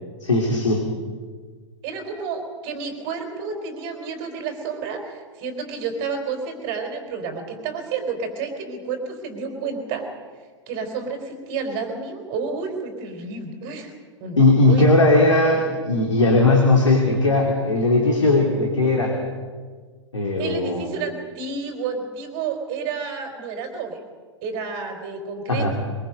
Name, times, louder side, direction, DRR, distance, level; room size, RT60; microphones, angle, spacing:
voice 1, 0.2-0.8 14.4-19.2 20.1-20.9 25.5-25.7, left 2 dB, 75° left, 1 dB, 3.0 m, -18 dB
voice 2, 1.8-10.1 10.7-13.9 14.2-14.9 20.4-24.0 24.4-25.7, right 5 dB, 35° right, 5 dB, 4.0 m, -30 dB
22.5 x 22.0 x 5.2 m, 1.5 s
figure-of-eight pair, 110°, 16 cm